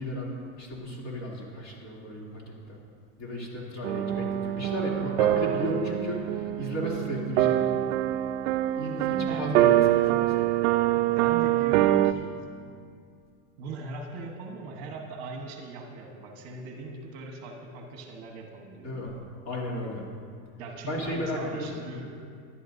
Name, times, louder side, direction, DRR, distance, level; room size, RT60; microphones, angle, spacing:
voice 1, 0.0-2.4 2.7-2.8 3.2-7.6 8.8-10.3 18.8-19.1 19.4-20.0 20.9-21.7, equal, 30° left, -4 dB, 2.8 m, -34 dB
sound 1, 3.8-12.1, right 14 dB, 60° right, 0.6 m, -25 dB
voice 2, 9.1-9.9 11.0-12.4 13.6-19.2 20.6-22.2, right 3 dB, 45° right, 2 dB, 1.3 m, -40 dB
22.0 x 11.5 x 2.7 m, 2.2 s
supercardioid pair, 175°, 44 cm